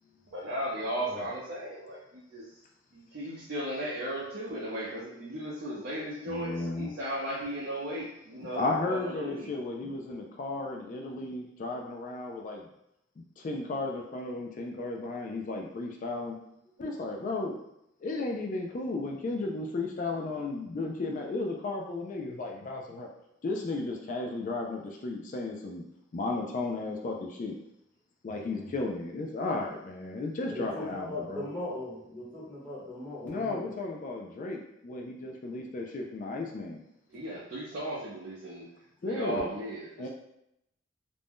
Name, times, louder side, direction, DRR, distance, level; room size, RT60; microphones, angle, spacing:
voice 1, 0.3-2.5 2.9-9.5 37.1-38.7 39.1-40.1, right 1 dB, 55° right, -7 dB, 0.6 m, -36 dB
voice 2, 6.3-6.9 8.5-12.7 13.2-16.4 16.8-17.6 18.0-23.1 23.4-25.8 26.1-27.6 28.2-31.5 33.2-36.8 39.0-39.5 40.0-40.1, left 2 dB, 40° left, 1 dB, 0.3 m, -34 dB
voice 3, 28.2-28.7 30.5-33.7, left 1 dB, 10° left, -8 dB, 1.0 m, -40 dB
2.6 x 2.2 x 3.4 m, 0.80 s
head